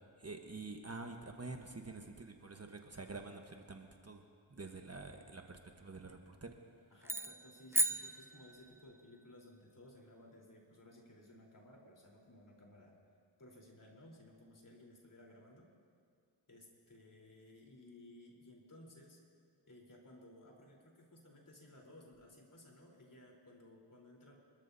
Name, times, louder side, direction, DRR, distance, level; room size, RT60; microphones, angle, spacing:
voice 1, 0.2-4.2 4.5-6.5, right 3 dB, 30° right, 4 dB, 1.2 m, -48 dB
voice 2, 6.9-13.0 13.4-15.7 16.5-19.2 19.7-24.4, left 1 dB, 40° left, -2 dB, 3.9 m, -58 dB
sound 1, 7.0-9.0, right 1 dB, 5° right, 0.4 m, -36 dB
25.5 x 13.0 x 2.8 m, 2.2 s
cardioid pair, 50°, 47 cm